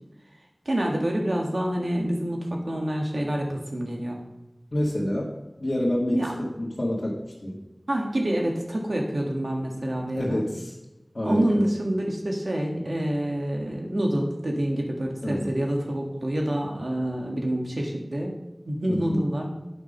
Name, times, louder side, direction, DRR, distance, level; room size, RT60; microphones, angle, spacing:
voice 1, 0.6-4.2 6.1-6.4 7.9-10.4 11.2-18.4 18.7-19.5, right 1 dB, 75° right, 0 dB, 1.7 m, -27 dB
voice 2, 4.7-5.3 5.6-7.6 10.1-10.8 11.1-11.6 15.2-15.5 18.9-19.3, left 1 dB, 55° left, -8 dB, 2.0 m, -28 dB
8.6 x 5.1 x 5.5 m, 0.97 s
wide cardioid pair, 45°, 0 cm